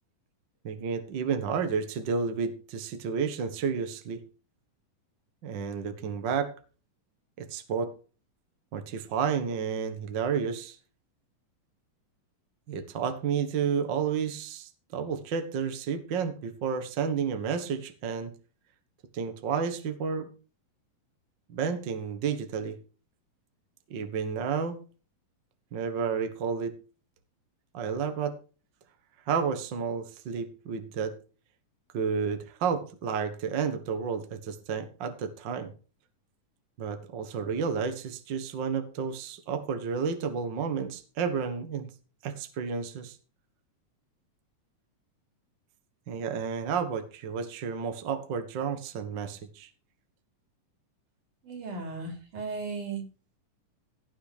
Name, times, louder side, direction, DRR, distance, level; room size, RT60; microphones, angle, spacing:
voice 1, 0.6-4.2 5.4-6.5 7.4-7.9 8.7-10.8 12.7-18.3 19.1-20.3 21.5-22.8 23.9-24.8 25.7-26.7 27.7-28.3 29.3-31.1 31.9-35.7 36.8-41.9 42.2-43.2 46.1-49.7, right 6 dB, 50° right, 8 dB, 1.4 m, -31 dB
voice 2, 51.4-53.0, right 4 dB, 70° right, 4 dB, 4.6 m, -36 dB
16.5 x 6.4 x 5.0 m, 0.36 s
omnidirectional pair, 3.8 m